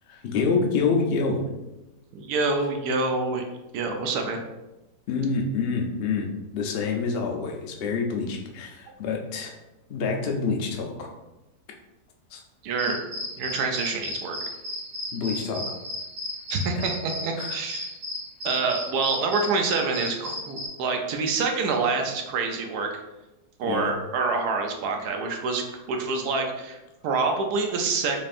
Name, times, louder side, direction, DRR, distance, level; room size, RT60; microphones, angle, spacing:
voice 1, 0.1-1.5 5.1-9.5 9.9-11.1 12.3-12.4 15.1-15.6 17.4-17.6 23.6-23.9, left 4 dB, 65° left, 1 dB, 0.6 m, -27 dB
voice 2, 2.1-3.4 3.7-4.4 12.6-13.0 13.4-14.4 16.5-17.9 18.4-22.9 23.6-25.6 25.9-28.2, right 4 dB, 90° right, 3 dB, 1.2 m, -26 dB
sound 1, 12.8-20.7, left 1 dB, 75° right, 1.8 m, -34 dB
4.1 x 3.4 x 2.5 m, 1.0 s
omnidirectional pair, 1.6 m